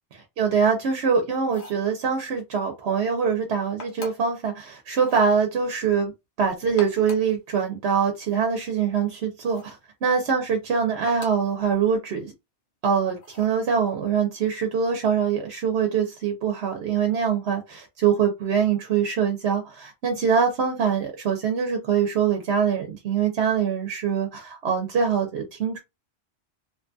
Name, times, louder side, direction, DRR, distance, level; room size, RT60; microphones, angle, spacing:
voice 1, 0.4-6.1 6.4-12.3 12.8-25.8, right 6 dB, 75° right, 0.9 m, -24 dB
sound 1, 1.4-1.9 3.8-4.4 5.0-5.3 6.6-7.4 9.4-9.8 11.1-11.5 13.2-13.6, left 2 dB, 75° left, 1.1 m, -43 dB
2.8 x 2.3 x 2.5 m
omnidirectional pair, 1.1 m